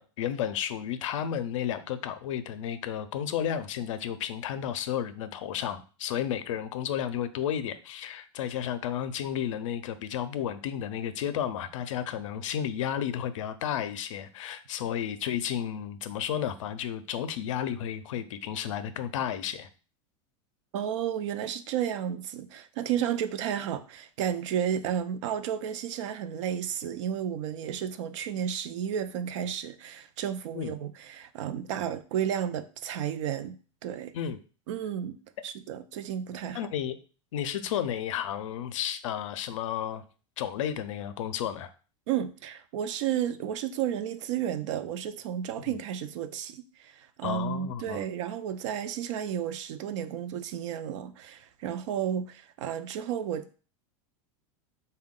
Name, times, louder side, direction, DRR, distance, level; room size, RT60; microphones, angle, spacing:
voice 1, 0.0-19.7 30.5-30.7 34.1-34.4 36.5-37.0 37.3-40.0 40.4-41.7 45.6-45.8 47.2-48.0, left 9 dB, 80° left, 0.4 m, -32 dB
voice 2, 20.7-34.1 34.7-35.2 35.4-36.7 42.1-53.6, right 9 dB, 70° right, 0.5 m, -32 dB
3.6 x 2.2 x 3.6 m
supercardioid pair, 125°, 16 cm